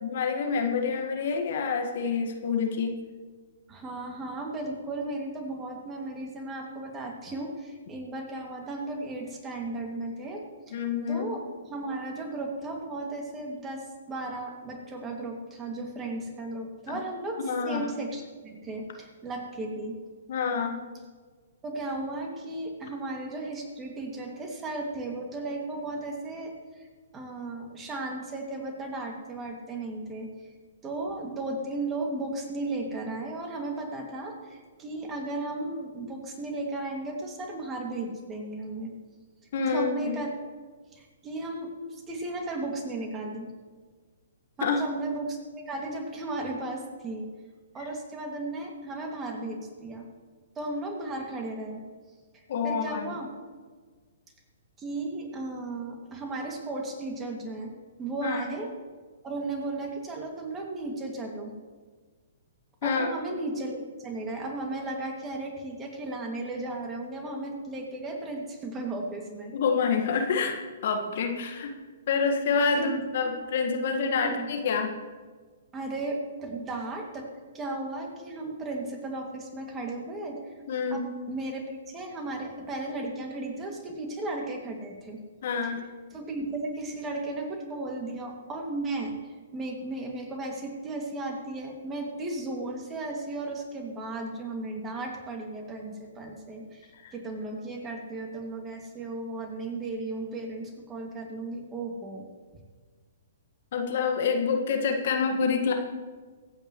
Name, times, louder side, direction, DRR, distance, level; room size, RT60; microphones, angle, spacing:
voice 1, 0.0-2.9 10.7-11.3 16.9-17.0 17.4-17.9 20.3-20.8 39.5-40.2 44.6-44.8 52.5-53.1 58.2-58.5 62.8-63.1 69.5-70.6 70.8-71.7 72.1-74.9 80.7-81.1 85.4-85.8 96.9-97.1 103.7-105.7, left 5 dB, 55° left, 4 dB, 1.7 m, -27 dB
voice 2, 3.7-10.8 11.1-11.4 11.7-20.0 21.6-26.5 26.8-26.9 27.1-30.3 30.8-39.0 39.7-40.3 40.9-43.5 44.6-47.3 47.7-50.1 50.6-51.9 52.6-53.3 54.8-57.7 58.0-58.7 59.2-61.5 62.8-69.5 72.7-73.0 74.2-74.5 75.7-77.3 77.5-80.5 80.9-81.0 81.3-85.2 86.1-102.2, right 2 dB, 20° right, 1 dB, 2.4 m, -35 dB
24.0 x 9.1 x 3.2 m, 1.5 s
figure-of-eight pair, 120°, 0 cm